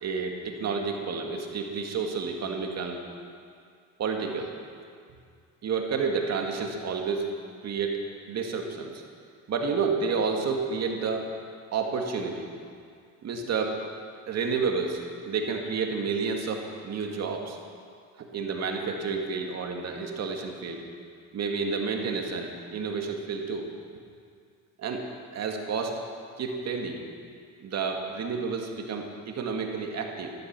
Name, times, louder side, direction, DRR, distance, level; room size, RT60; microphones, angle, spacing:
voice 1, 0.0-3.0 4.0-4.5 5.6-7.3 7.6-9.0 9.5-11.3 11.7-12.5 13.2-13.8 14.3-17.6 18.2-20.8 21.3-23.7 24.8-25.1 25.3-26.0 26.4-27.0 27.6-30.3, right 5 dB, 45° right, 2 dB, 2.3 m, -30 dB
13.5 x 12.0 x 6.1 m, 2.3 s
supercardioid pair, 85°, 36 cm